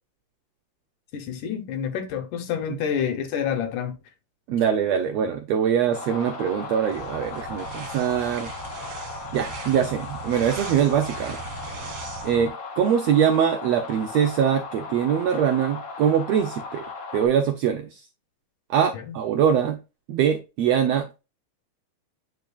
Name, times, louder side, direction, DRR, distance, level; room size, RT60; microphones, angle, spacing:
voice 1, 1.1-4.0 19.1-19.2, left 8 dB, 75° left, 2.6 m, -28 dB
voice 2, 4.5-8.8 9.3-11.4 12.2-16.8 17.1-18.0 18.7-19.8 20.1-21.2, right 8 dB, 80° right, 1.5 m, -23 dB
sound 1, 5.9-17.3, left 4 dB, 50° left, 2.4 m, -37 dB
sound 2, 6.9-12.5, right 5 dB, 50° right, 1.8 m, -39 dB
9.3 x 4.6 x 2.3 m
omnidirectional pair, 3.8 m